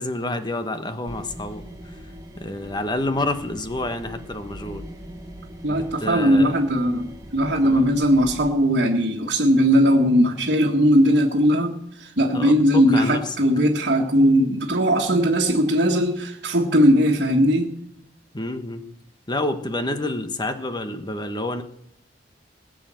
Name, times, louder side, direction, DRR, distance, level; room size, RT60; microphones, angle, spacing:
voice 1, 0.0-4.8 5.7-6.6 7.6-7.8 12.3-13.4 18.3-18.8 19.3-21.6, left 2 dB, 25° left, 9 dB, 1.3 m, -29 dB
sound 1, 1.1-8.5, equal, 20° right, 2.2 m, -41 dB
voice 2, 5.6-17.7, equal, 65° right, -2 dB, 1.8 m, -19 dB
20.0 x 7.7 x 7.7 m, 0.76 s
head